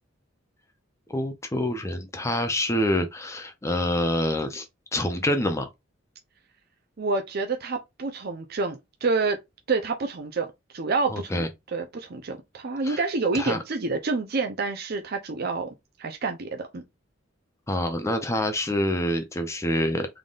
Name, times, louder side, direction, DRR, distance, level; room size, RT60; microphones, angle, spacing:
voice 1, 1.1-4.7 4.9-5.7 11.1-11.5 12.8-13.0 13.3-13.6 17.7-20.1, left 1 dB, 15° left, 0.5 m, -26 dB
voice 2, 7.0-9.4 9.7-10.5 10.7-15.7 16.0-16.8, right 3 dB, 55° right, 0.6 m, -28 dB
3.8 x 3.6 x 2.4 m
head